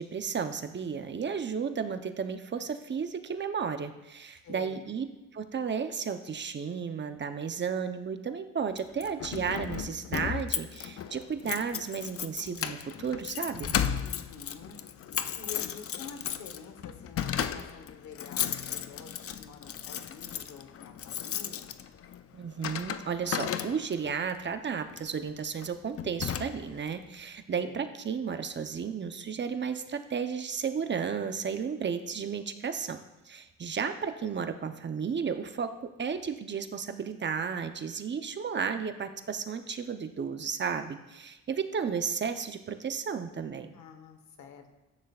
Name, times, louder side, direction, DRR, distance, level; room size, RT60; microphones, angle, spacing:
voice 1, 0.0-5.1 5.3-13.7 22.3-33.0 33.2-43.7, right 6 dB, 35° right, 8 dB, 0.8 m, -33 dB
voice 2, 4.4-4.9 14.0-15.1 15.4-21.8 27.5-27.8 43.7-44.7, left 6 dB, 70° left, 7 dB, 1.2 m, -48 dB
Keys jangling, 8.8-24.1 24.9-25.2 25.6-25.7 26.0-26.9, left 9 dB, 50° left, 0.5 m, -35 dB
14.0 x 9.3 x 2.4 m, 0.98 s
cardioid pair, 90°, 30 cm